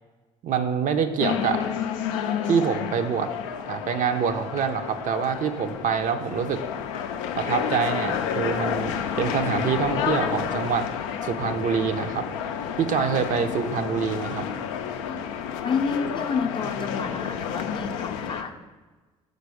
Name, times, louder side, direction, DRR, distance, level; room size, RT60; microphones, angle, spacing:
voice 1, 0.4-1.6 2.4-3.3 3.7-6.6 7.4-10.9 11.2-12.3 12.8-14.5, right 6 dB, 50° right, 7 dB, 0.5 m, -25 dB
sound 1, 1.2-18.4, left 8 dB, 80° left, 0.4 m, -30 dB
voice 2, 15.1-18.6, left 5 dB, 30° left, 6 dB, 0.5 m, -30 dB
5.3 x 4.0 x 4.7 m, 1.3 s
hypercardioid pair, 60°, 17 cm